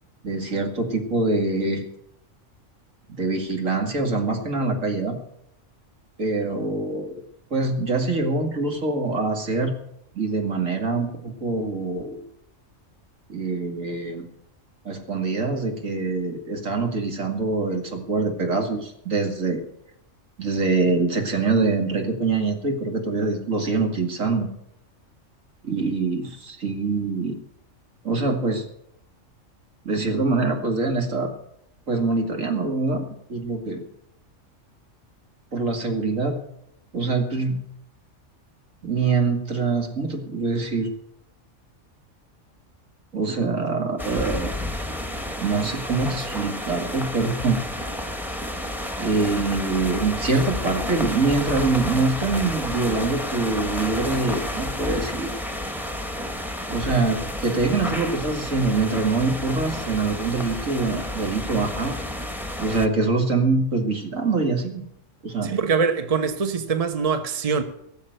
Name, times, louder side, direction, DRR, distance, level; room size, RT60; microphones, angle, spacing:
voice 1, 0.2-1.8 3.2-5.2 6.2-7.1 7.5-9.7 10.1-12.2 13.3-14.3 14.8-19.6 20.4-24.5 25.6-27.4 28.0-28.6 29.8-31.3 31.9-33.8 35.5-36.4 36.9-37.6 38.8-40.9 43.1-44.5 45.4-47.9 49.0-55.3 56.7-62.0 62.6-64.8 65.2-65.5, right 3 dB, 85° right, 2.7 m, -24 dB
sound 1, 44.0-62.9, left 1 dB, ahead, 1.0 m, -31 dB
voice 2, 65.4-67.6, right 5 dB, 30° right, 1.1 m, -23 dB
18.0 x 7.4 x 8.0 m
omnidirectional pair, 1.3 m